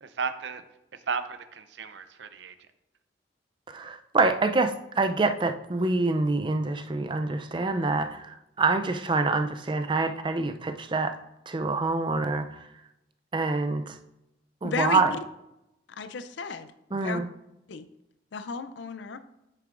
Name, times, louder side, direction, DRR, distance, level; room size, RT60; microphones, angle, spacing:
voice 1, 0.0-0.6 1.1-2.6, right 5 dB, 75° right, 11 dB, 0.5 m, -34 dB
voice 2, 3.7-11.2 11.5-12.7 13.3-14.0 14.6-15.1 16.9-17.3, right 3 dB, 25° right, 8 dB, 0.4 m, -26 dB
voice 3, 14.6-15.0 15.9-17.2 17.7-17.9 18.3-19.2, left 5 dB, 80° left, 11 dB, 0.5 m, -34 dB
8.3 x 6.7 x 2.5 m, 0.89 s
head